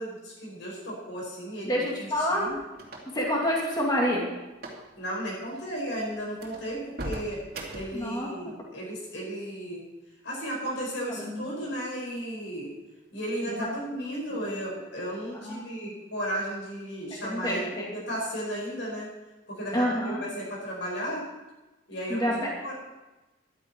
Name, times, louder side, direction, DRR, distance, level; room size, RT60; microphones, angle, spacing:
voice 1, 0.0-2.6 5.0-7.4 7.7-9.8 10.2-12.7 13.1-19.1 19.5-21.2 21.9-22.7, equal, 65° left, -3 dB, 5.8 m, -34 dB
voice 2, 1.7-2.4 3.1-4.3 7.9-8.5 11.1-11.5 13.5-13.6 15.3-15.9 17.2-17.9 19.7-20.2 22.1-22.5, equal, 20° left, -2 dB, 2.2 m, -28 dB
sound 1, 1.9-3.3 4.5-4.9 5.1-5.3 5.8-5.9 6.4-8.1, right 1 dB, 50° right, 2.5 m, -39 dB
14.5 x 11.5 x 4.5 m, 1.1 s
head